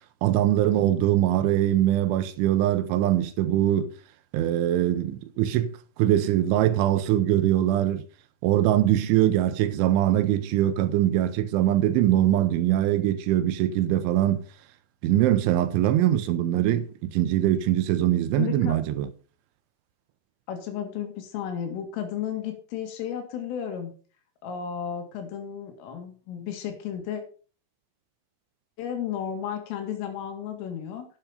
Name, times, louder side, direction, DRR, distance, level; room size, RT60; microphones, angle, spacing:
voice 1, 0.2-3.9 4.3-8.0 8.4-14.5 15.0-19.1, right 12 dB, 80° right, 3.0 m, -22 dB
voice 2, 18.4-18.8 20.5-23.9 24.4-27.2 28.8-31.1, left 9 dB, 80° left, 4.5 m, -33 dB
9.1 x 8.9 x 5.1 m
omnidirectional pair, 5.8 m